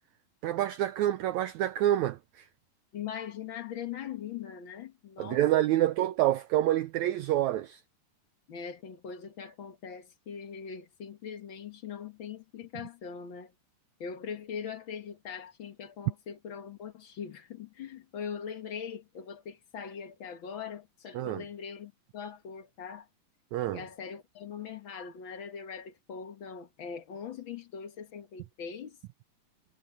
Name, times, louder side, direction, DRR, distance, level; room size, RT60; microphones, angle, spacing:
voice 1, 0.4-2.5 5.2-7.8 21.1-21.4 23.5-23.8, right 13 dB, 85° right, 1.6 m, -27 dB
voice 2, 2.9-5.4 8.5-13.5 14.0-23.1 23.7-29.0, left 7 dB, 50° left, 1.6 m, -41 dB
omnidirectional pair, 4.0 m